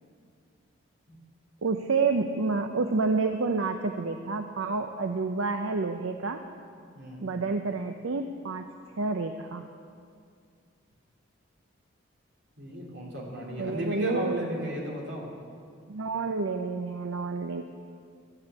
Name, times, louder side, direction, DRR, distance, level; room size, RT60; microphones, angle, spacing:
voice 1, 1.6-6.4 7.2-8.6 9.0-9.6 13.6-14.5 15.9-17.6, right 4 dB, 80° right, 6 dB, 0.6 m, -29 dB
voice 2, 7.0-7.3 12.6-15.3, equal, 60° right, -3 dB, 3.0 m, -34 dB
13.5 x 10.0 x 8.1 m, 2.2 s
head